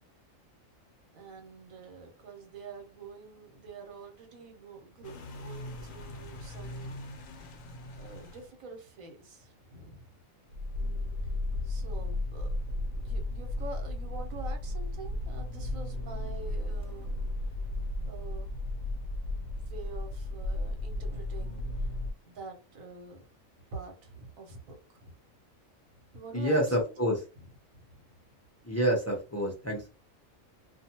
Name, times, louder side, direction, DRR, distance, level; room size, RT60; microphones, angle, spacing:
voice 1, 1.1-7.0 8.0-10.1 11.6-12.5 12.9-17.2 18.1-18.6 19.6-21.6 22.3-23.3 23.7-25.1 26.1-27.1 27.8-27.9, right 3 dB, 85° right, 1.2 m, -46 dB
sound 1, 5.0-8.5 10.5-22.1, left 1 dB, 75° left, 1.0 m, -35 dB
voice 2, 26.3-27.2 28.6-29.9, right 1 dB, 15° left, 0.5 m, -28 dB
2.5 x 2.3 x 2.8 m
omnidirectional pair, 1.4 m